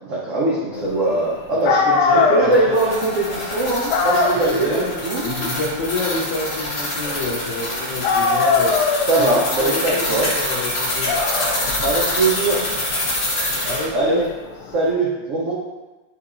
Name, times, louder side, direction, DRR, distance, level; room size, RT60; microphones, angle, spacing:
voice 1, 0.0-5.2 9.1-10.3 11.8-12.7 13.9-14.3 14.7-15.5, right 2 dB, 85° right, -5 dB, 0.6 m, -21 dB
voice 2, 0.7-1.8 2.1-2.8 4.3-8.8 9.2-11.2 13.6-14.2, left 2 dB, 65° left, -4 dB, 1.2 m, -29 dB
Dog, 1.3-1.4 1.6-7.7 8.0-14.8, left 4 dB, 80° left, 1.4 m, -23 dB
sound 1, 2.5-13.9, left 1 dB, 50° left, 0.8 m, -26 dB
6.8 x 2.8 x 2.5 m, 1.2 s
omnidirectional pair, 2.3 m